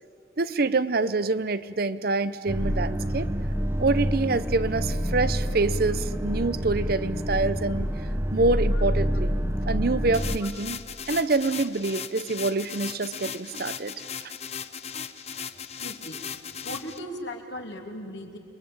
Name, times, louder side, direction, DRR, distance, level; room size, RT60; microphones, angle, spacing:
voice 1, 0.4-3.3 3.8-7.9 8.3-9.3 9.7-10.8 11.1-14.3, right 3 dB, 50° right, 14 dB, 0.7 m, -26 dB
sound 1, 2.5-10.4, equal, 15° right, 1.2 m, -27 dB
sound 2, 10.1-17.0, left 7 dB, 35° left, 0.9 m, -37 dB
voice 2, 15.8-16.2 16.6-18.4, left 1 dB, 65° left, 2 dB, 3.1 m, -37 dB
29.0 x 22.0 x 8.7 m, 2.5 s
head